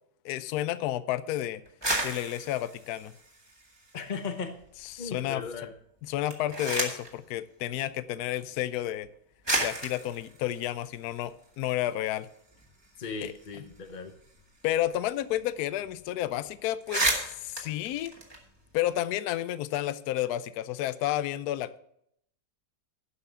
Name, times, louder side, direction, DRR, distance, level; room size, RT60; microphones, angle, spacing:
voice 1, 0.2-1.6 2.0-3.1 4.9-5.4 6.1-9.1 9.6-12.3 13.2-13.3 14.6-18.1 18.7-21.8, left 13 dB, 70° left, 15 dB, 1.0 m, -31 dB
sound 1, 1.6-4.2 4.6-5.3 6.1-7.2 8.2-8.3 9.0-9.1 9.4-11.8 12.1-12.2 12.5-15.1 15.3-15.5 15.8-16.0 16.4-16.5 16.7-18.9, right 2 dB, 15° right, 1.9 m, -34 dB
voice 2, 3.9-4.5 5.0-5.7 13.0-14.1, left 5 dB, 45° left, 6 dB, 0.6 m, -37 dB
11.5 x 5.8 x 6.7 m, 0.72 s
omnidirectional pair, 1.9 m